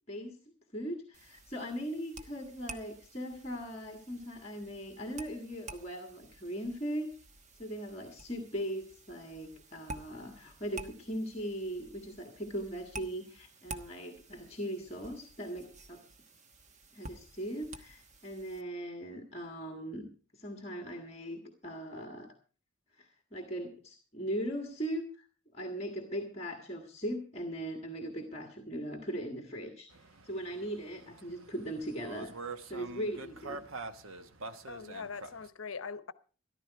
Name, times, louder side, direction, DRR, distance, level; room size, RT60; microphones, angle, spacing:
voice 1, 0.1-0.4 0.7-7.1 7.6-16.0 16.9-20.1 20.3-22.3 22.9-25.3 25.5-29.9 30.2-32.3 32.7-33.6, equal, 30° left, 1.5 m, -39 dB
sound 1, 1.1-18.6, right 2 dB, 35° right, 1.1 m, -51 dB
sound 2, 29.9-35.5, right 3 dB, 80° right, 1.0 m, -45 dB
voice 2, 34.7-36.1, left 5 dB, 80° left, 0.8 m, -42 dB
14.0 x 12.5 x 4.6 m
head